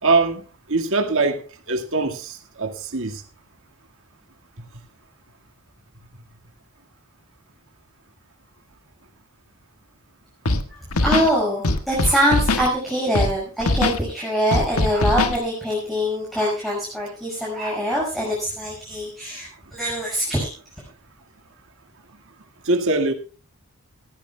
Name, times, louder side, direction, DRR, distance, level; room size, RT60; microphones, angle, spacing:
voice 1, 0.0-0.4 0.7-1.4 1.7-3.2 22.6-23.1, right 3 dB, 65° right, 5 dB, 2.0 m, -22 dB
Scratching (performance technique), 10.4-10.6 10.9-11.3 11.6-12.7 13.1-13.3 13.6-14.0 14.5-15.4, left 2 dB, 80° left, 1.6 m, -21 dB
voice 2, 10.7-20.5, equal, ahead, -4 dB, 5.7 m, -24 dB
19.5 x 15.0 x 2.3 m, 0.36 s
head